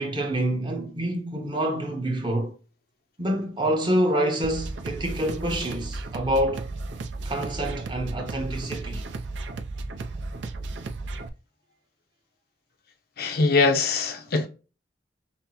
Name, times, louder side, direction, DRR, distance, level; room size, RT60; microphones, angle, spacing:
voice 1, 0.0-2.5 3.2-6.7 7.2-9.0, right 1 dB, 25° right, 0.8 m, -27 dB
sound 1, 4.4-11.3, right 3 dB, 70° right, 0.5 m, -34 dB
voice 2, 13.2-14.5, left 3 dB, 50° left, 0.5 m, -22 dB
5.7 x 2.0 x 2.9 m
head